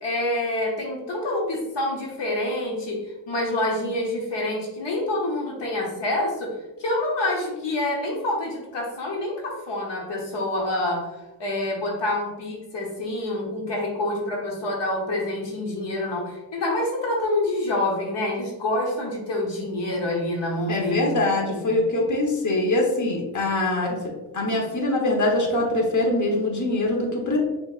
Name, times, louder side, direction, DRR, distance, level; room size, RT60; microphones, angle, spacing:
voice 1, 0.0-21.1 21.5-21.7, left 1 dB, 90° left, -1 dB, 1.1 m, -27 dB
voice 2, 20.7-24.0 24.3-27.4, left 2 dB, 45° left, -1 dB, 1.2 m, -23 dB
6.0 x 3.4 x 2.5 m, 1.0 s
cardioid pair, 90°, 41 cm